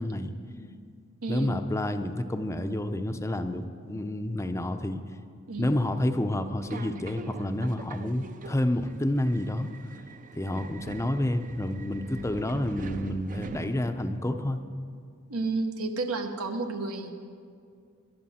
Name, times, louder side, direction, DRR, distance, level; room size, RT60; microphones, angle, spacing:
voice 1, 0.0-1.0 1.3-5.0 5.6-9.7 10.3-14.6, left 1 dB, 15° left, 8 dB, 0.5 m, -29 dB
voice 2, 1.2-1.6 5.5-5.7 15.3-17.1, right 3 dB, 80° right, 5 dB, 1.0 m, -31 dB
Subway metro underground, 6.6-14.2, right 3 dB, 40° right, 0.5 m, -43 dB
18.0 x 11.5 x 4.2 m, 2.3 s
head